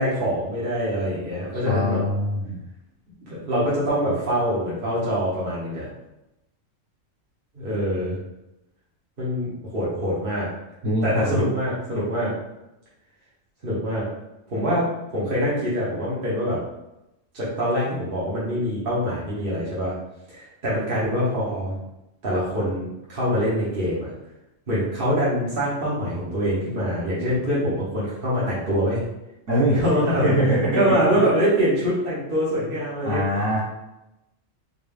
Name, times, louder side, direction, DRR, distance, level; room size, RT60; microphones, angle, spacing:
voice 1, 0.0-2.0 3.3-5.9 7.5-8.2 9.2-10.5 11.0-12.3 13.6-14.0 14.5-16.6 17.3-19.9 20.3-21.7 22.2-24.1 24.7-29.0 29.7-30.3 30.7-33.2, equal, 45° right, -8 dB, 1.2 m, -24 dB
voice 2, 1.7-2.6 10.8-11.5 29.5-29.8 30.2-30.8 31.1-31.2 33.0-33.6, equal, 70° right, -8 dB, 1.9 m, -23 dB
3.9 x 2.3 x 3.4 m, 0.91 s
omnidirectional pair, 1.4 m